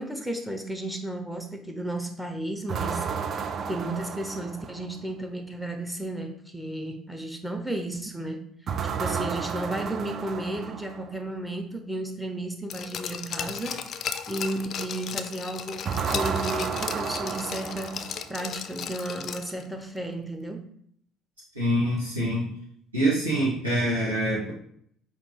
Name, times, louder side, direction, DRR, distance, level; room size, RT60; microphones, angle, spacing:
voice 1, 0.0-3.1 3.7-8.5 9.0-13.8 14.3-20.7, right 1 dB, 5° right, 5 dB, 0.6 m, -33 dB
sound 1, 2.7-5.0 8.7-11.2 15.8-18.5, right 6 dB, 45° right, 0.3 m, -32 dB
Glass, 12.7-19.6 20.0-20.1, left 7 dB, 50° left, 0.3 m, -35 dB
voice 2, 21.5-22.5 22.9-24.5, right 1 dB, 85° right, -8 dB, 0.9 m, -25 dB
4.8 x 2.4 x 3.4 m, 0.66 s
figure-of-eight pair, 55°, 0 cm